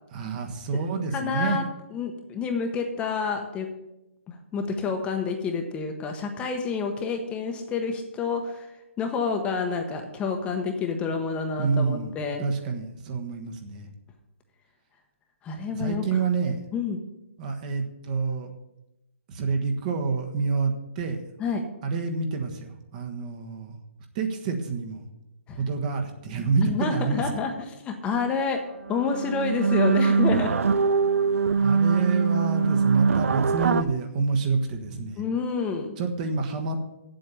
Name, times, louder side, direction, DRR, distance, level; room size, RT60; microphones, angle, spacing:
voice 1, 0.1-1.6 11.6-12.1 12.4-13.9 15.7-16.6 17.4-18.5 19.3-21.2 21.8-23.7 24.1-25.0 25.6-27.3 31.6-35.2 36.0-36.9, right 4 dB, 35° right, 4 dB, 1.3 m, -28 dB
voice 2, 1.1-1.6 1.9-3.7 4.3-8.7 9.0-12.4 15.4-16.0 16.7-17.0 21.4-21.6 25.5-25.6 26.6-27.5 27.8-28.6 28.9-30.5 35.2-36.0, left 5 dB, 15° left, 4 dB, 0.9 m, -28 dB
sound 1, 28.4-28.5 28.8-33.8, right 5 dB, 80° right, 0.5 m, -23 dB
8.6 x 7.7 x 6.8 m, 0.92 s
hypercardioid pair, 150°, 7 cm